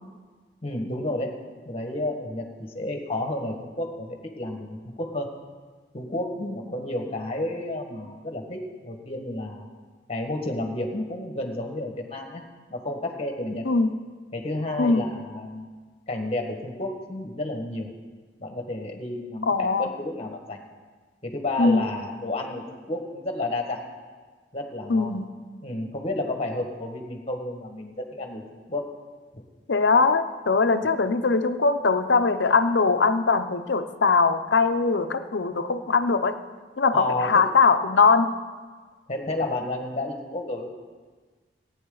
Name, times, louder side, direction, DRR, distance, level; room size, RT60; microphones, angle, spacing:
voice 1, 0.6-1.4 1.6-5.3 5.9-9.6 10.1-12.4 12.7-13.7 14.3-15.7 16.1-17.9 18.4-20.6 21.2-23.8 24.5-25.2 25.6-28.4 28.7-28.8 29.3-29.4 36.9-37.4 39.1-40.7, left 2 dB, 35° left, 3 dB, 1.6 m, -31 dB
voice 2, 19.4-19.9 21.6-21.8 24.9-25.3 29.7-36.4 36.8-38.3, left 4 dB, 85° left, 9 dB, 0.7 m, -21 dB
18.0 x 9.2 x 3.9 m, 1.4 s
head